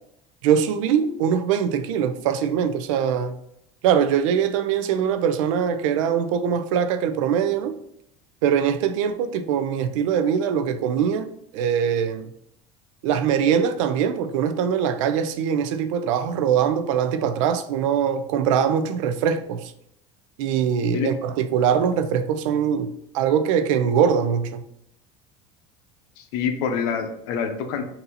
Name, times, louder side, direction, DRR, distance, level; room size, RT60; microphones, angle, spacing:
voice 1, 0.4-3.4 3.8-7.8 8.4-12.3 13.0-19.7 20.4-24.6, right 8 dB, 90° right, 0.4 m, -22 dB
voice 2, 26.2-27.9, left 6 dB, 75° left, 0.7 m, -26 dB
4.0 x 2.7 x 4.0 m
supercardioid pair, 110°, 16 cm